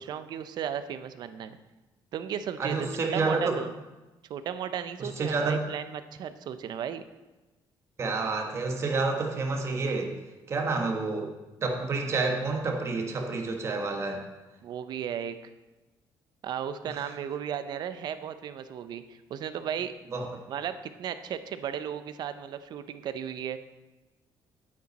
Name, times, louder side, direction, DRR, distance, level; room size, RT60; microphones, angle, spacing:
voice 1, 0.0-1.6 2.1-3.7 4.3-7.0 14.6-15.4 16.4-19.9 20.5-23.6, right 9 dB, 55° right, 11 dB, 0.6 m, -35 dB
voice 2, 2.6-3.6 5.0-5.7 8.0-10.2 10.5-11.3 11.6-14.2 16.9-17.1 20.1-20.3, right 3 dB, 35° right, 2 dB, 1.3 m, -29 dB
8.7 x 8.7 x 4.1 m, 1.1 s
cardioid pair, 155°, 8 cm